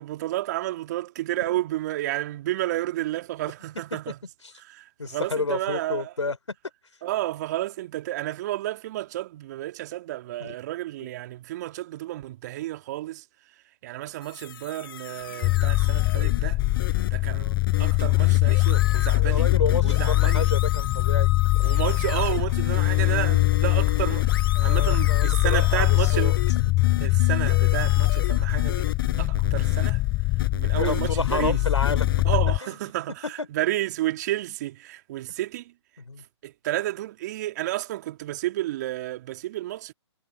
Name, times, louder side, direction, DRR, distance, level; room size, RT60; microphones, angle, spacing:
voice 1, 0.0-4.2 4.7-6.1 7.0-17.5 17.8-19.5 19.8-20.5 21.6-26.3 27.0-28.9 29.2-31.6 32.2-35.8 36.2-39.9, right 15 dB, 35° right, 2.3 m, -31 dB
voice 2, 5.0-6.6 6.8-7.0 10.4-10.5 11.0-11.1 17.2-17.6 19.2-21.7 24.6-26.4 27.0-27.1 30.8-32.1 32.6-32.8 33.2-33.5 36.0-36.2, left 3 dB, 80° left, 4.7 m, -31 dB
sound 1, 14.2-32.4, left 10 dB, 50° left, 6.6 m, -34 dB
sound 2, 15.4-32.6, left 21 dB, 15° left, 0.6 m, -22 dB
figure-of-eight pair, 135°, 15 cm